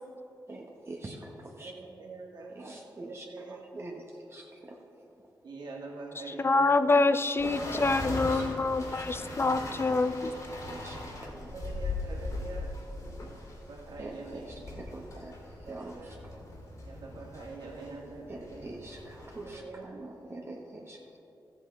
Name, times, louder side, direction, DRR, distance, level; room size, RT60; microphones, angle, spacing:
voice 1, 0.5-1.7 2.5-4.8 7.4-8.4 8.9-9.1 9.9-10.0 10.5-11.5 14.0-15.4 15.7-16.3 18.3-21.2, right 2 dB, 35° right, -1 dB, 1.2 m, -44 dB
voice 2, 1.6-2.5 3.0-3.6 5.4-6.9 11.5-12.7 13.2-14.5 15.7-16.1 16.8-18.7 19.3-19.9, right 3 dB, 70° right, -1 dB, 2.0 m, -44 dB
voice 3, 6.4-10.3, left 3 dB, 30° left, 12 dB, 0.5 m, -26 dB
sound 1, 7.4-19.6, left 2 dB, 50° left, 2.8 m, -40 dB
13.0 x 7.9 x 4.6 m, 2.8 s
cardioid pair, 65°, 8 cm